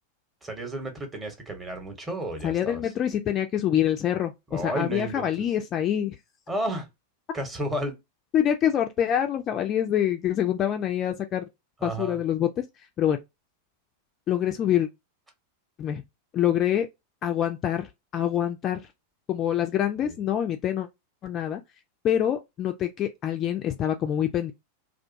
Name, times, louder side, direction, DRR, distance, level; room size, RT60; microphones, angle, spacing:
voice 1, 0.4-2.8 4.5-5.5 6.5-6.9 7.3-8.0 11.8-12.2 20.0-20.2, right 1 dB, 15° right, 0.9 m, -32 dB
voice 2, 2.4-6.2 8.3-11.4 11.8-12.5 13.0-13.2 14.3-14.9 15.8-16.0 16.3-16.9 17.2-17.9 18.1-18.8 19.3-20.9 21.2-21.6 22.0-24.5, left 10 dB, 30° left, 0.3 m, -25 dB
2.4 x 2.2 x 2.5 m
figure-of-eight pair, 90°, 0 cm